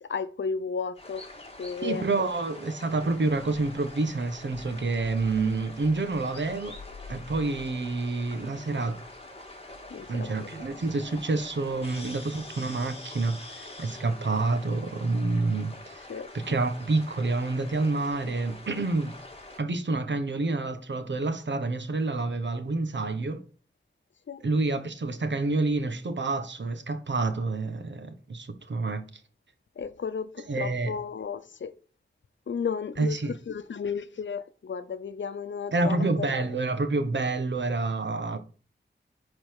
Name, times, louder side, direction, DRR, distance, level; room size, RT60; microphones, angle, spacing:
voice 1, 0.0-1.2 1.6-2.3 9.9-10.3 16.1-16.3 24.3-24.4 29.8-31.8 32.5-36.5, left 6 dB, 90° left, 0.7 m, -34 dB
sound 1, 0.9-19.6, left 2 dB, 30° left, 2.1 m, -45 dB
voice 2, 1.8-6.8 7.1-9.0 10.1-16.0 16.5-19.1 19.6-23.4 24.4-29.0 30.5-30.9 33.0-33.3 35.7-38.4, right 3 dB, 75° right, 1.3 m, -28 dB
10.5 x 4.2 x 4.8 m
wide cardioid pair, 90°, 19 cm